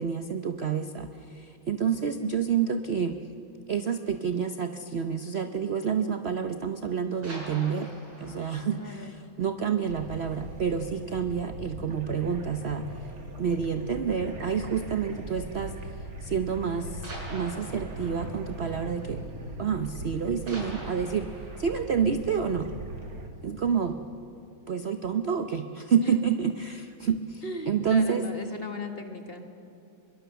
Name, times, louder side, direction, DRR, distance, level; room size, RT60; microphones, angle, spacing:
voice 1, 0.0-3.2 3.7-7.9 8.2-12.8 13.4-17.0 17.3-19.2 19.6-21.3 21.6-22.7 23.4-24.0 24.7-28.3, right 7 dB, 60° right, 8 dB, 0.6 m, -28 dB
sound 1, 7.1-10.5 10.9-11.0 11.4-11.6 11.9-12.0 12.8-13.2 14.4-14.7 15.6-15.7 17.0-19.8 20.1-23.2 23.7-23.8, right 1 dB, 85° right, 6.7 m, -46 dB
voice 2, 8.8-9.1 25.9-26.1 27.4-29.4, left 2 dB, 30° left, 4 dB, 1.8 m, -37 dB
sound 2, 9.8-23.3, right 1 dB, 45° right, 2.5 m, -40 dB
24.0 x 22.5 x 6.9 m, 2.6 s
omnidirectional pair, 2.2 m